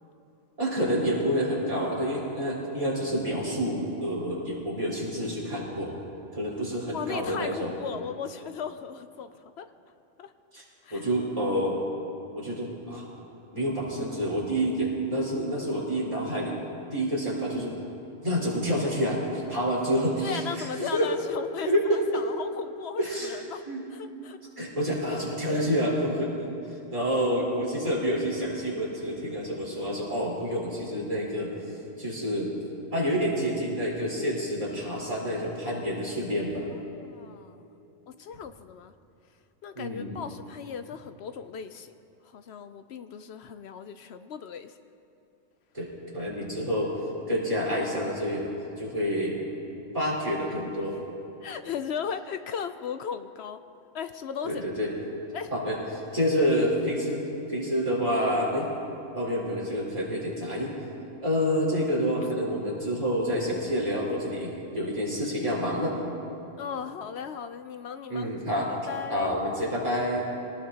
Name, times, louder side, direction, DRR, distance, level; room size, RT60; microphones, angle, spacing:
voice 1, 0.6-5.9 6.3-7.7 10.5-10.6 10.9-11.8 12.3-13.1 13.5-16.6 16.9-17.7 18.2-21.1 21.7-22.2 23.0-23.4 23.7-23.8 24.6-26.5 26.9-31.5 32.0-32.5 32.9-36.6 39.7-40.2 45.7-46.9 47.3-48.5 48.8-49.4 49.9-51.0 54.4-54.9 55.5-58.7 59.1-60.7 61.2-65.9 68.1-68.7 69.1-70.2, equal, 25° right, -7 dB, 4.3 m, -28 dB
voice 2, 6.9-9.7 10.2-10.3 10.8-11.1 20.2-23.6 23.9-24.4 36.6-37.6 38.1-38.9 39.6-41.9 42.2-44.8 51.4-53.6 53.9-54.6 55.3-55.5 56.1-56.6 66.6-69.3, left 7 dB, 65° left, 10 dB, 0.7 m, -37 dB
23.5 x 19.0 x 2.9 m, 2.9 s
omnidirectional pair, 1.3 m